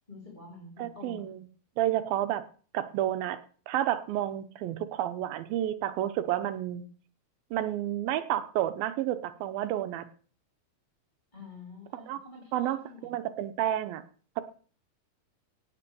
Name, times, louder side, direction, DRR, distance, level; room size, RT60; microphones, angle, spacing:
voice 1, 0.1-1.2 11.3-13.1, left 3 dB, 15° left, -1 dB, 3.9 m, -47 dB
voice 2, 0.8-1.5 1.8-2.4 2.7-3.4 3.7-6.8 7.5-10.1 11.9-12.2 12.5-12.8 13.0-14.0, right 12 dB, 90° right, 10 dB, 2.7 m, -30 dB
17.0 x 6.2 x 6.9 m, 0.42 s
omnidirectional pair, 4.1 m